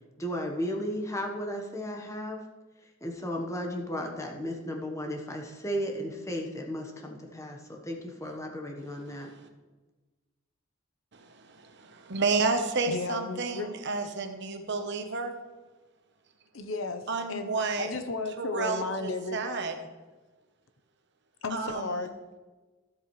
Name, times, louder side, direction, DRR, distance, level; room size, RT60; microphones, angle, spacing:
voice 1, 0.2-2.4 3.0-9.3, equal, 15° left, 1 dB, 1.1 m, -34 dB
voice 2, 9.1-9.5 11.1-15.4 17.1-17.9 18.4-19.7 21.5-22.0, right 4 dB, 60° right, 6 dB, 0.9 m, -31 dB
voice 3, 12.9-13.7 16.5-17.0 17.3-19.4 21.4-22.2, left 3 dB, 80° left, 9 dB, 0.8 m, -34 dB
13.5 x 7.7 x 3.2 m, 1.2 s
head